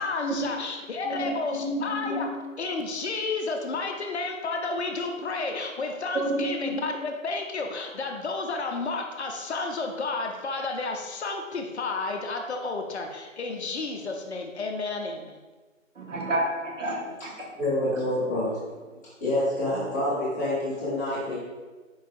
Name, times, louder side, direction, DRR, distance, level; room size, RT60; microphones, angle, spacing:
voice 1, 0.0-2.3 2.6-15.4, left 3 dB, 55° left, 3 dB, 0.5 m, -31 dB
voice 2, 1.1-2.2 6.1-6.8 16.0-17.0, right 1 dB, 70° right, -2 dB, 1.1 m, -29 dB
voice 3, 17.6-18.6 19.2-21.4, left 1 dB, 15° left, -11 dB, 0.8 m, -27 dB
4.5 x 3.1 x 2.5 m, 1.3 s
figure-of-eight pair, 155°, 40 cm